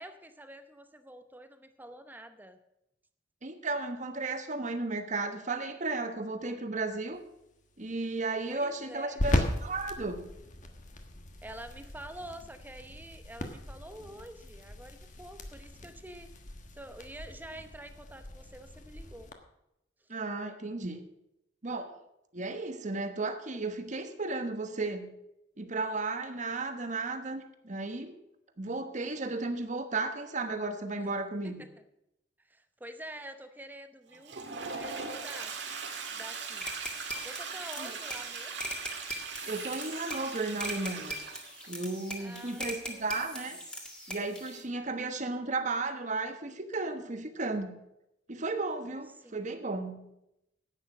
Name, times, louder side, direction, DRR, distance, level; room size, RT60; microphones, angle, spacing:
voice 1, 0.0-2.6 8.5-9.3 11.4-16.3 16.7-19.3 31.0-31.1 31.6-31.7 32.4-35.6 36.1-36.7 37.2-38.7 42.2-43.2 44.8-45.1 49.2-49.5, right 1 dB, 10° right, 9 dB, 0.8 m, -47 dB
voice 2, 3.4-7.2 7.8-10.3 20.1-21.0 21.6-22.0 22.3-25.1 25.6-28.2 28.6-31.7 37.8-37.9 39.4-41.2 41.7-43.6 44.1-47.7 48.3-50.1, right 3 dB, 45° right, 8 dB, 1.2 m, -34 dB
sound 1, 7.1-19.3, left 1 dB, 45° left, 1.4 m, -38 dB
Toilet flush, 34.1-41.7, right 5 dB, 75° right, 2.0 m, -40 dB
sound 2, 36.6-44.6, equal, 5° left, 1.9 m, -41 dB
11.0 x 8.9 x 6.1 m, 0.84 s
head